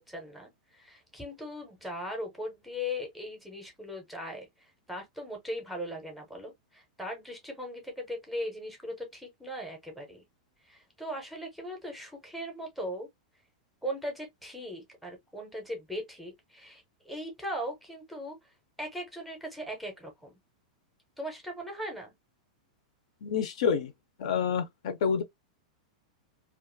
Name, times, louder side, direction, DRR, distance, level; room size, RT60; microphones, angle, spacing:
voice 1, 0.0-10.2 10.6-13.1 13.8-18.4 18.8-20.3 21.2-22.1, equal, ahead, 0.6 m, -39 dB
voice 2, 23.2-23.9 24.2-25.2, left 6 dB, 55° left, 0.5 m, -28 dB
2.4 x 2.3 x 2.5 m
supercardioid pair, 175°, 4 cm